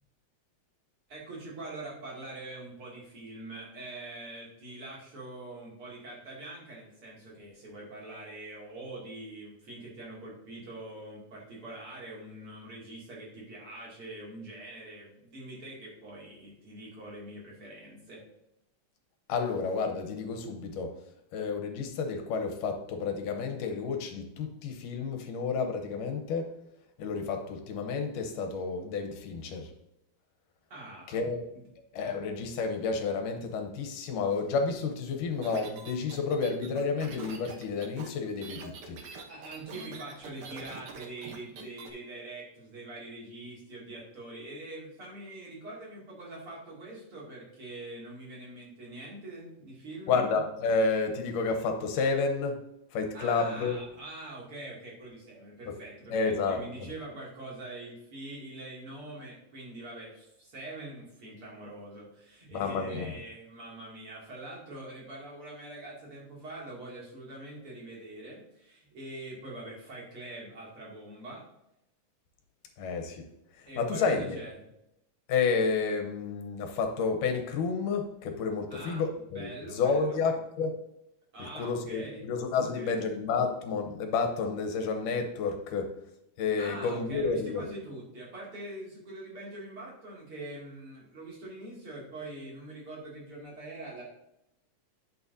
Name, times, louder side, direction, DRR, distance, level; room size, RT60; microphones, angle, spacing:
voice 1, 1.1-18.2 30.7-31.2 31.5-31.6 39.3-50.2 53.1-71.4 73.7-74.5 78.7-79.0 79.3-80.2 81.3-82.2 82.5-83.0 86.6-94.0, right 2 dB, 45° right, -5 dB, 3.2 m, -44 dB
voice 2, 19.3-20.9 21.3-26.5 27.0-29.7 31.1-31.4 31.9-39.0 50.1-52.6 52.9-53.8 55.7-55.8 56.1-56.6 62.5-63.1 72.8-73.2 73.8-74.4 75.3-80.7 81.4-85.9 86.4-87.6, left 4 dB, 80° left, 4 dB, 2.5 m, -30 dB
sound 1, 35.4-41.9, right 5 dB, 65° right, 1.4 m, -45 dB
11.0 x 6.6 x 2.7 m, 0.83 s
omnidirectional pair, 3.8 m